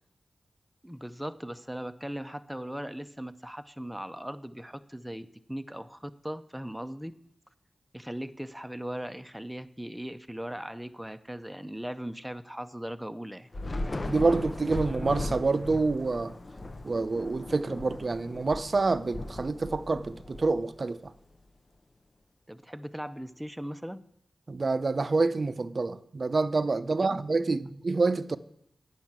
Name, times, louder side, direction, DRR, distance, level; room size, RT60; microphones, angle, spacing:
voice 1, 0.8-7.1 7.9-13.5 22.5-24.0 27.0-27.2, equal, 5° right, 0.7 m, -39 dB
Thunder / Rain, 13.5-21.1, left 2 dB, 45° left, 0.7 m, -38 dB
voice 2, 14.1-16.3 16.8-21.1 24.5-28.4, right 3 dB, 55° right, 0.5 m, -27 dB
9.2 x 5.6 x 7.3 m
cardioid pair, 40°, 0 cm